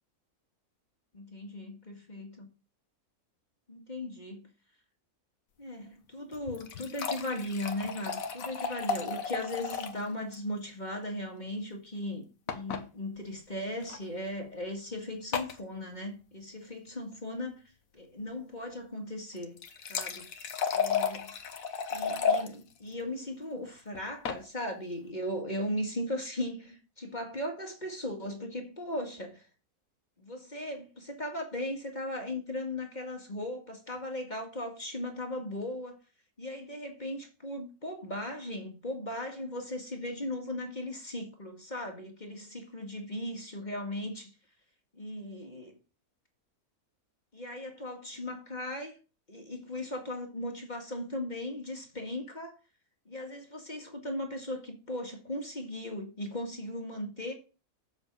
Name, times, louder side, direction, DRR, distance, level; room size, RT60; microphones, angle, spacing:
voice 1, 1.1-2.5 3.7-4.4 5.6-17.6 17.9-19.6 19.9-20.3 20.7-21.3 21.9-29.4 30.2-36.0 36.4-44.3 44.9-45.7 47.3-49.0 49.3-52.5 53.1-57.3, left 1 dB, 30° left, 2.1 m, -37 dB
sound 1, 6.3-10.0 10.3-10.4 10.7-10.8 12.5-12.8 13.8-14.0 15.3-15.6 19.4-22.5 23.9-24.4, left 6 dB, 65° left, 1.4 m, -33 dB
7.4 x 7.2 x 5.4 m
omnidirectional pair, 1.6 m